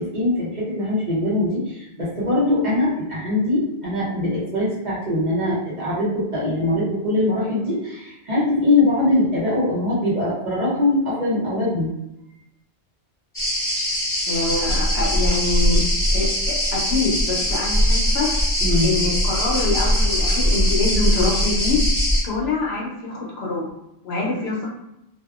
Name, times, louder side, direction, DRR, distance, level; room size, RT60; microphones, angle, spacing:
voice 1, 0.0-11.9 18.6-18.9, left 2 dB, 45° right, -8 dB, 1.0 m, -22 dB
sound 1, 13.3-22.2, equal, 15° left, 0.7 m, -21 dB
voice 2, 14.2-15.8 16.1-18.3 18.8-21.8 22.2-23.6 24.0-24.7, left 3 dB, 70° left, -3 dB, 0.9 m, -25 dB
2.7 x 2.3 x 2.4 m, 0.86 s
omnidirectional pair, 1.1 m